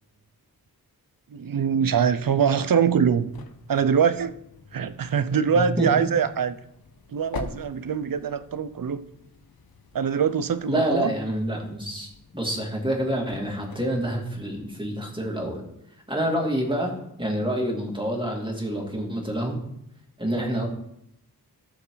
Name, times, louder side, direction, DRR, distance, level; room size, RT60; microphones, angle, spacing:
voice 1, 1.3-3.3 3.7-4.4 4.7-6.6 7.1-9.0 9.9-11.1, right 7 dB, 60° right, 14 dB, 0.7 m, -23 dB
sound 1, 2.8-14.8, left 5 dB, 70° left, 1.2 m, -45 dB
voice 2, 5.5-5.9 10.7-15.6 16.1-16.9 17.2-19.6 20.2-20.7, right 1 dB, 15° right, 0 dB, 2.8 m, -27 dB
14.5 x 6.7 x 4.0 m, 0.79 s
wide cardioid pair, 70°, 38 cm